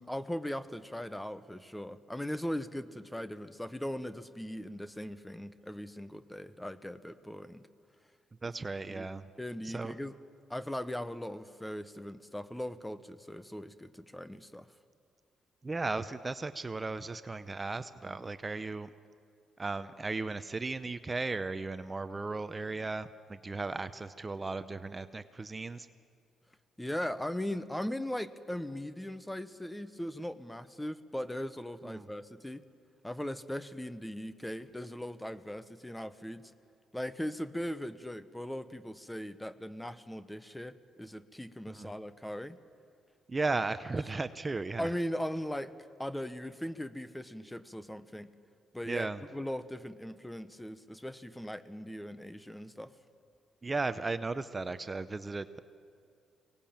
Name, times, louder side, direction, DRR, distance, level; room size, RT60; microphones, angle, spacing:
voice 1, 0.0-7.7 8.9-9.1 9.4-10.1 10.5-14.7 26.8-32.6 33.0-36.4 36.9-42.6 44.8-45.7 46.0-48.3 48.7-52.9, equal, 5° left, 14 dB, 0.9 m, -39 dB
voice 2, 8.4-9.2 9.6-10.0 15.6-18.9 19.6-25.9 31.8-32.1 41.7-41.9 43.3-44.9 48.9-49.2 53.6-55.6, right 3 dB, 25° right, 12 dB, 0.7 m, -36 dB
23.5 x 18.5 x 8.8 m, 2.3 s
cardioid pair, 90°, 0 cm